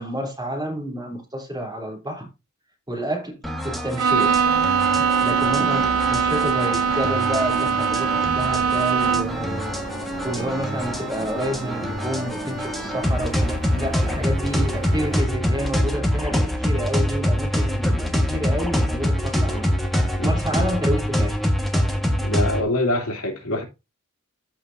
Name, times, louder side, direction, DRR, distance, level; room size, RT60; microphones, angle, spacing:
voice 1, 0.0-2.3 2.9-4.3 4.9-8.1 8.3-10.0 10.2-19.6 20.2-21.4, right 1 dB, 20° right, 3.4 m, -29 dB
sound 1, 3.4-22.6, equal, ahead, 1.5 m, -25 dB
Bowed string instrument, 4.0-9.5, right 6 dB, 80° right, 0.6 m, -21 dB
sound 2, 4.1-15.2, right 2 dB, 45° right, 3.1 m, -36 dB
voice 2, 20.2-20.6 22.2-23.6, left 1 dB, 80° left, 2.8 m, -25 dB
14.0 x 5.0 x 2.6 m
head